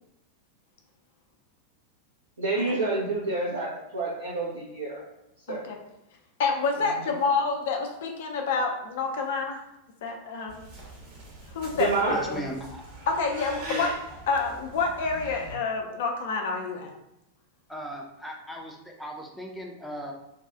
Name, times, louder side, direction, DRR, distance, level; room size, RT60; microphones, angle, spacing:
voice 1, 2.4-5.0 5.5-5.7 11.7-12.2, right 3 dB, 70° right, -6 dB, 0.8 m, -28 dB
voice 2, 6.4-9.6 10.0-10.6 11.5-12.4 13.1-13.9 14.3-16.9, left 4 dB, 55° left, 2 dB, 0.6 m, -28 dB
sound 1, 10.5-15.5, right 2 dB, 50° right, 1.2 m, -43 dB
voice 3, 12.1-12.8 13.7-14.2 17.7-20.1, equal, ahead, -1 dB, 0.6 m, -37 dB
2.7 x 2.4 x 3.5 m, 0.88 s
figure-of-eight pair, 90°, 0 cm